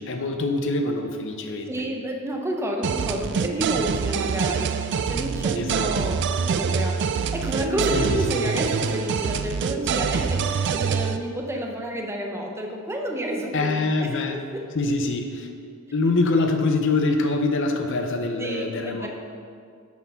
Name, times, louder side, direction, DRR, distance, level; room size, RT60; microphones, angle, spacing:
voice 1, 0.0-1.7 5.5-5.9 7.9-8.4 13.5-14.4 14.7-15.5 15.9-19.1, left 3 dB, 60° left, 5 dB, 0.7 m, -24 dB
voice 2, 1.7-14.6 18.4-19.1, right 1 dB, 10° right, 1 dB, 0.7 m, -30 dB
sound 1, 2.8-11.2, right 6 dB, 55° right, 0.3 m, -25 dB
8.4 x 4.3 x 5.6 m, 2.2 s
head